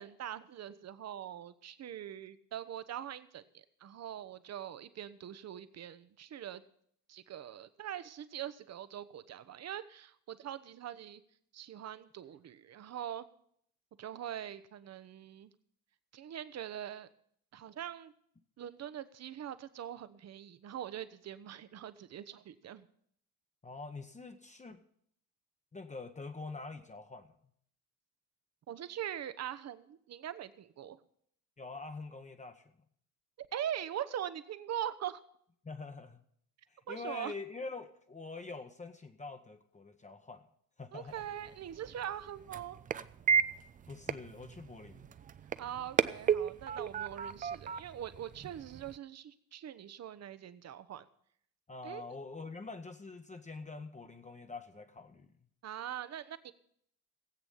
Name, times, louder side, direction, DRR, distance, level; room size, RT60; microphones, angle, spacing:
voice 1, 0.0-6.6 7.1-11.2 11.5-13.2 14.0-15.5 16.1-17.1 17.5-18.1 18.6-22.9 28.7-31.0 33.5-35.2 36.9-37.3 40.9-42.8 45.6-51.1 51.8-52.0 55.6-56.5, right 10 dB, 35° right, 14 dB, 0.9 m, -42 dB
voice 2, 23.6-24.8 25.7-27.3 31.6-32.6 35.6-36.2 36.9-40.4 40.8-41.2 43.9-45.1 51.7-55.3, left 3 dB, 15° left, 7 dB, 1.0 m, -45 dB
sound 1, 41.1-49.0, right 7 dB, 20° right, 0.4 m, -35 dB
17.0 x 8.4 x 5.6 m, 0.66 s
figure-of-eight pair, 55°, 45 cm